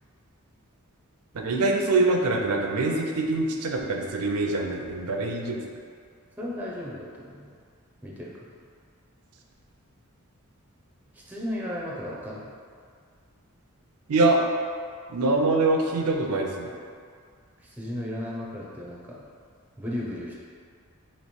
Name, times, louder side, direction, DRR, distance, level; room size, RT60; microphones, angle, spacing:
voice 1, 1.3-5.6 14.1-14.4 15.1-16.7, right 2 dB, 90° right, 1 dB, 0.5 m, -24 dB
voice 2, 6.4-7.5 8.0-8.5 11.1-12.5 17.6-19.2 19.8-20.3, left 1 dB, 5° right, -5 dB, 0.5 m, -35 dB
3.0 x 3.0 x 4.3 m, 2.1 s
head